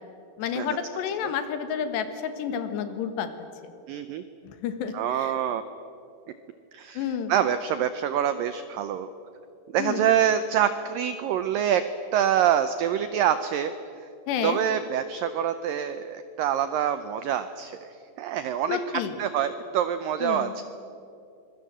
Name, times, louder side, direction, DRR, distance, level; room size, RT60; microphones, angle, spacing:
voice 1, 0.4-3.3 3.6-3.7 4.5-5.3 7.0-7.3 9.8-10.1 14.3-14.6 18.7-19.1 20.2-20.5, left 8 dB, 80° left, 8 dB, 3.6 m, -30 dB
voice 2, 3.9-4.2 4.9-5.6 6.7-9.1 9.7-11.8 12.1-13.7 14.0-14.1 14.4-17.9 18.2-18.8 19.2-20.6, right 9 dB, 85° right, 11 dB, 2.0 m, -26 dB
25.5 x 22.0 x 7.6 m, 2.6 s
omnidirectional pair, 4.9 m